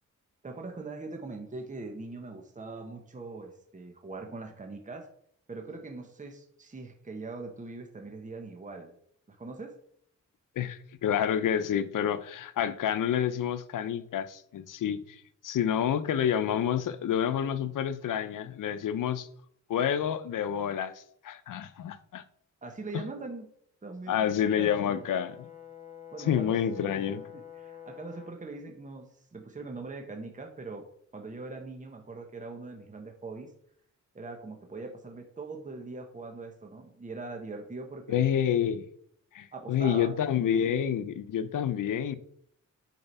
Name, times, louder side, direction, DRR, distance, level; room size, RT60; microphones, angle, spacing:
voice 1, 0.4-5.1 5.5-8.9 9.3-9.8 22.6-23.5 23.8-25.0 26.1-30.8 31.1-33.5 34.1-38.2 39.5-40.1, right 3 dB, 25° right, 1.2 m, -42 dB
voice 2, 10.6-15.2 15.4-19.3 19.7-22.2 24.1-25.5 26.2-27.2 38.1-38.9 39.3-42.2, left 9 dB, 85° left, 0.7 m, -28 dB
Brass instrument, 24.2-28.4, left 9 dB, 25° left, 1.0 m, -48 dB
9.3 x 4.9 x 5.5 m
wide cardioid pair, 115°, 31 cm